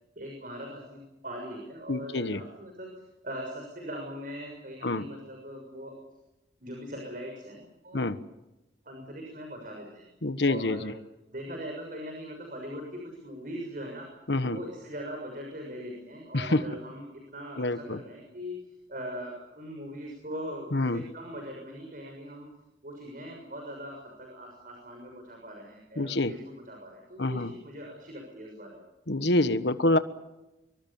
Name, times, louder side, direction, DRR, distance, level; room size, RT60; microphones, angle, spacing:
voice 1, 0.1-2.9 3.2-5.9 6.6-8.0 8.8-10.1 10.4-10.9 11.3-14.1 14.4-18.6 18.9-22.5 22.8-28.8, equal, 50° right, 1 dB, 6.6 m, -41 dB
voice 2, 1.9-2.4 4.8-5.0 7.9-8.2 10.2-10.9 14.3-14.6 16.3-16.6 17.6-18.0 20.7-21.0 26.0-26.3 27.2-27.5 29.1-30.0, left 2 dB, 70° left, 11 dB, 1.3 m, -26 dB
25.0 x 24.0 x 7.2 m, 0.96 s
head